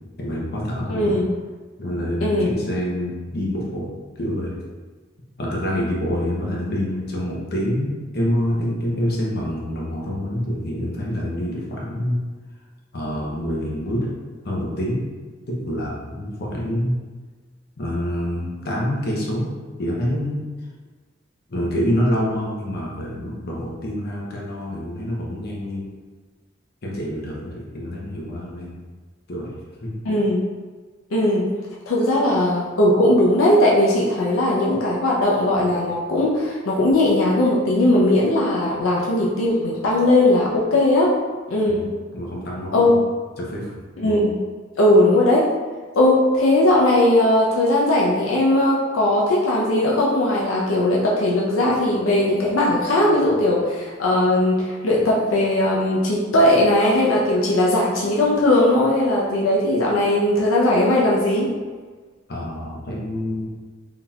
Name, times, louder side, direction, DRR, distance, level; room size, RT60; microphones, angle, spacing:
voice 1, 0.2-1.2 1.8-3.9 4.2-4.5 5.4-12.2 12.9-14.1 14.4-15.0 15.5-17.0 17.8-19.5 19.8-20.4 21.5-25.8 26.8-28.8 29.3-29.5 29.8-29.9 41.7-41.8 42.1-43.0 43.4-44.1 62.3-63.5, equal, 55° left, -4 dB, 0.8 m, -26 dB
voice 2, 0.9-1.3 2.2-2.5 30.0-30.4 31.1-31.5 31.9-41.1 41.5-41.8 42.7-43.0 44.0-44.4 44.8-45.5 45.9-61.5, left 1 dB, 85° left, -4 dB, 0.5 m, -18 dB
3.6 x 2.8 x 2.3 m, 1.4 s
head